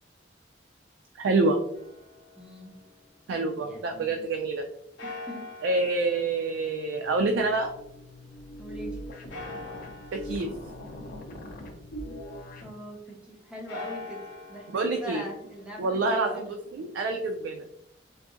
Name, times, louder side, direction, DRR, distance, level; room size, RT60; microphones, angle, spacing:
voice 1, 1.2-1.6 3.3-4.6 5.6-7.7 10.1-10.5 14.7-15.2 15.8-16.5 16.8-17.7, right 3 dB, 85° right, 4 dB, 0.3 m, -27 dB
sound 1, 1.7-3.8 5.0-8.4 9.3-12.3 13.5-17.5, left 3 dB, 85° left, 0.9 m, -45 dB
voice 2, 2.4-2.8 3.6-4.3 5.0-5.4 8.6-9.0 12.6-16.5, equal, 5° right, -2 dB, 0.4 m, -42 dB
sound 2, 7.0-12.7, equal, 55° left, 0.5 m, -41 dB
3.8 x 2.6 x 2.4 m, 0.80 s
head